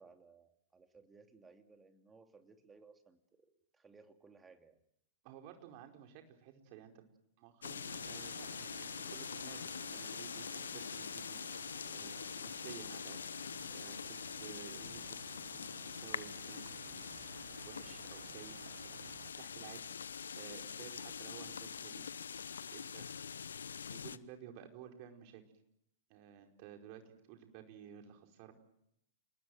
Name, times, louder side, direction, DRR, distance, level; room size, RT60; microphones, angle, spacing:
voice 1, 0.0-4.8, right 4 dB, 15° right, 6 dB, 2.8 m, -61 dB
voice 2, 5.2-7.1 7.4-13.2 13.7-17.3 17.7-18.5 18.8-19.9 20.4-22.0 22.7-23.4 23.9-25.4 26.1-28.5, right 9 dB, 45° right, 4 dB, 4.9 m, -54 dB
sound 1, 7.6-24.2, left 7 dB, 80° left, 0.9 m, -44 dB
sound 2, 7.9-19.3, right 10 dB, 65° right, 1.1 m, -55 dB
29.5 x 20.0 x 8.0 m, 0.77 s
hypercardioid pair, 105°, 0 cm